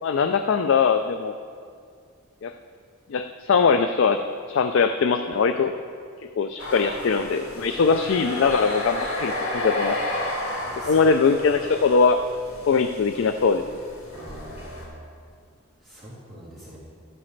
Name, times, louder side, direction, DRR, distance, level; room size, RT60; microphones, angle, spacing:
voice 1, 0.0-1.3 2.4-2.5 3.1-4.2 4.5-5.7 6.4-10.0 10.9-12.2 12.7-13.6, left 5 dB, 60° left, 8 dB, 0.3 m, -21 dB
sound 1, 6.6-14.9, left 1 dB, 85° left, 1.9 m, -32 dB
voice 2, 10.6-11.0 14.1-14.9 15.8-16.8, right 1 dB, ahead, -11 dB, 2.8 m, -43 dB
12.0 x 9.7 x 3.2 m, 2.2 s
head